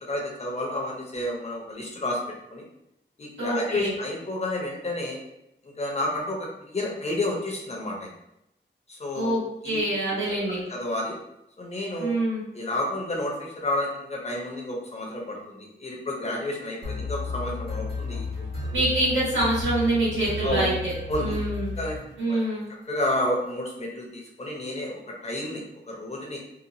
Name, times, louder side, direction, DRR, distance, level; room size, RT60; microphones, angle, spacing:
voice 1, 0.1-2.2 2.5-2.6 3.2-5.2 5.6-8.1 8.9-9.3 9.6-9.8 10.7-11.2 11.6-12.1 12.5-18.8 20.4-20.7 21.1-21.3 21.8-22.4 22.9-26.4, left 1 dB, 35° left, -2 dB, 0.7 m, -30 dB
voice 2, 3.4-3.9 9.1-10.6 12.0-12.4 18.7-20.9 21.2-21.7 22.2-22.6, right 1 dB, 90° right, -8 dB, 1.3 m, -25 dB
sound 1, 16.8-22.5, left 2 dB, 55° right, 1.3 m, -33 dB
2.9 x 2.2 x 2.6 m, 0.82 s
wide cardioid pair, 130°, 19 cm